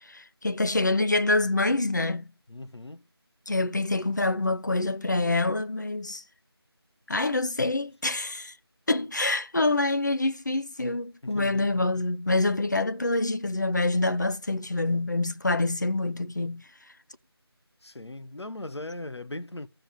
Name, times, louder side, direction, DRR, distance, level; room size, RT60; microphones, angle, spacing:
voice 1, 0.0-2.3 3.5-6.2 7.1-8.5 8.9-16.6, left 2 dB, 45° left, 0.7 m, -26 dB
voice 2, 2.5-3.0 11.2-11.8 17.8-19.7, left 2 dB, 90° left, 1.0 m, -39 dB
13.5 x 5.6 x 8.7 m
figure-of-eight pair, 170°, 14 cm